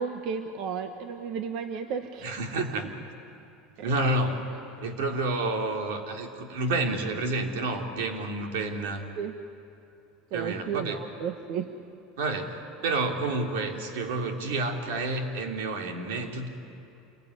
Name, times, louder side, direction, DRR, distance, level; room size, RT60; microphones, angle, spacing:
voice 1, 0.0-2.3 9.2-9.4 10.3-11.8, right 6 dB, 55° right, 6 dB, 1.2 m, -33 dB
voice 2, 2.2-2.9 3.8-4.4 4.7-9.1 10.3-11.0 12.2-12.6 12.8-16.5, right 2 dB, 85° right, 3 dB, 3.3 m, -29 dB
28.0 x 22.0 x 9.8 m, 2.8 s
cardioid pair, 160°, 0 cm